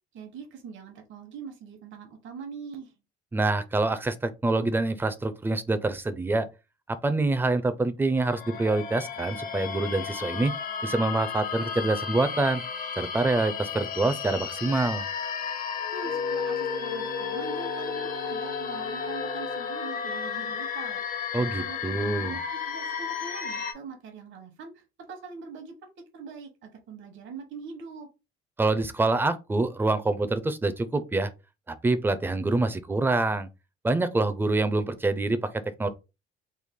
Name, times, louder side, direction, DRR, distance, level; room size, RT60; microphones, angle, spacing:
voice 1, 0.1-2.9 15.9-25.7 26.1-28.1, right 5 dB, 65° right, 1.0 m, -43 dB
voice 2, 3.3-6.5 7.0-10.5 10.8-12.6 13.0-15.1 21.3-22.4 28.6-31.3 31.7-33.5 33.8-35.4 35.8-35.9, right 2 dB, 10° right, 0.4 m, -26 dB
sound 1, 8.2-23.7, left 7 dB, 40° left, 0.6 m, -33 dB
Wind instrument woodwind instrument, 16.0-19.7, right 10 dB, 85° right, 0.5 m, -44 dB
3.2 x 2.1 x 3.5 m
cardioid pair, 100°, 21 cm